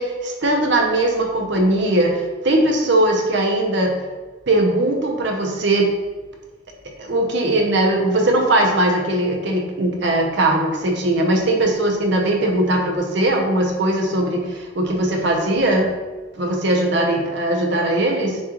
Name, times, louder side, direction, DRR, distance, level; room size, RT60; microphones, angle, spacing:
voice 1, 0.0-4.0 4.5-5.9 7.0-15.9 16.3-18.4, right 1 dB, 60° right, 1 dB, 0.7 m, -19 dB
6.5 x 2.4 x 3.0 m, 1.3 s
head